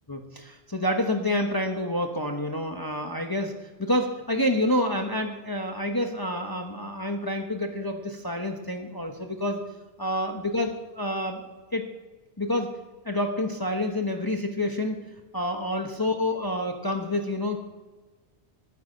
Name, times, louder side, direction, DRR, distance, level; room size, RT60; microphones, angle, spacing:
voice 1, 0.1-3.5 3.8-9.6 10.0-11.4 11.7-11.9 12.4-12.7 13.0-15.0 15.3-17.6, left 1 dB, 20° left, 3 dB, 1.1 m, -28 dB
13.5 x 8.4 x 8.6 m, 1.2 s
omnidirectional pair, 1.1 m